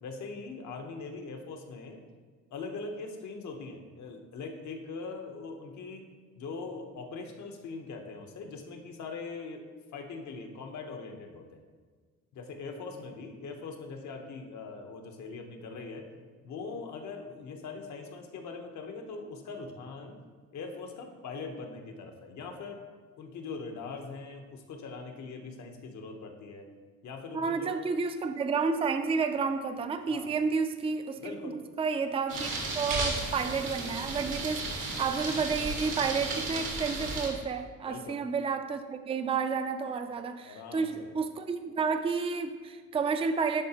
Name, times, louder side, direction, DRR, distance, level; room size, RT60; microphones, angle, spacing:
voice 1, 0.0-2.0 2.5-6.1 6.4-9.6 9.9-11.6 12.3-16.1 16.4-20.2 20.5-22.8 23.2-26.7 27.0-27.8 30.1-30.4 31.2-31.6 37.9-38.2 40.4-41.1, left 4 dB, 70° left, 4 dB, 1.0 m, -41 dB
voice 2, 27.3-32.5 32.7-43.6, right 5 dB, 20° right, 8 dB, 0.4 m, -31 dB
sound 1, 32.3-37.3, right 2 dB, 85° right, 1.6 m, -34 dB
10.5 x 4.0 x 2.9 m, 1.5 s
cardioid pair, 90°, 30 cm